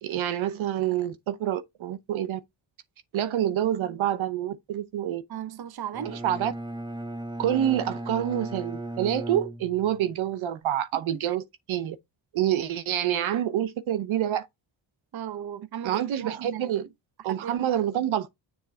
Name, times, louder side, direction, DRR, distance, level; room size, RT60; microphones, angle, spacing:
voice 1, 0.0-2.4 3.1-5.2 6.1-6.5 7.4-12.0 12.3-14.5 15.8-16.9 17.2-18.3, right 11 dB, 80° right, 0.8 m, -27 dB
voice 2, 5.3-6.2 11.1-11.4 15.1-16.8 17.3-17.9, right 9 dB, 50° right, 0.8 m, -37 dB
Bowed string instrument, 5.9-10.1, right 1 dB, 10° right, 0.8 m, -36 dB
7.2 x 3.8 x 4.2 m
cardioid pair, 80°, 48 cm